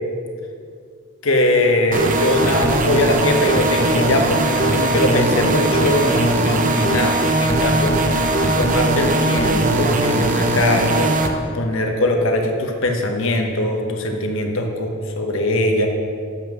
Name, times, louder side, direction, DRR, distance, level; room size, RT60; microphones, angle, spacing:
voice 1, 1.2-7.9 8.6-11.1 11.5-15.9, left 1 dB, 65° left, 3 dB, 0.9 m, -21 dB
sound 1, 1.9-11.3, right 2 dB, 35° right, 0.6 m, -19 dB
7.6 x 5.8 x 6.0 m, 2.3 s
head